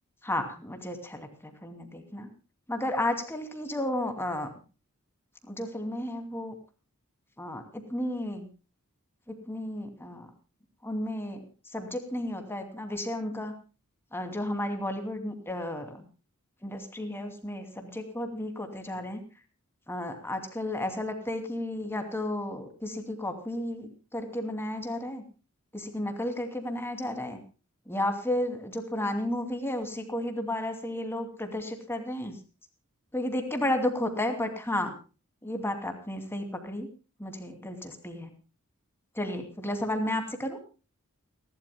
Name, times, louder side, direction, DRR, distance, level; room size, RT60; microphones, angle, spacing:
voice 1, 0.2-2.3 2.7-4.5 5.4-6.6 7.4-8.5 9.3-10.3 10.8-11.4 11.7-13.5 14.1-16.0 16.6-19.2 19.9-25.2 25.7-27.4 27.9-32.3 33.1-34.9 35.4-36.9 37.2-38.3 39.1-40.6, left 1 dB, 10° left, 5 dB, 2.6 m, -33 dB
29.5 x 12.0 x 2.2 m, 0.35 s
head